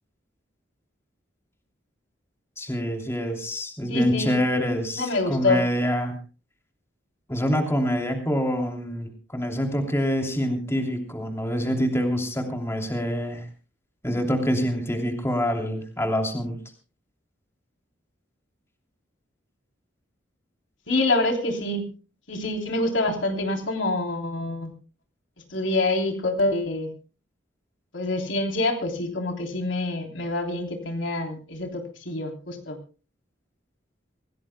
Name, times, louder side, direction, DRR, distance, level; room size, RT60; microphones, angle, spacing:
voice 1, 2.6-6.1 7.3-13.4 14.0-16.6, equal, 15° left, 3 dB, 2.9 m, -26 dB
voice 2, 3.9-4.4 4.9-5.6 20.9-21.8 22.3-24.7 25.5-26.9 27.9-32.8, left 2 dB, 80° left, 3 dB, 3.4 m, -26 dB
26.0 x 17.0 x 2.2 m, 0.35 s
head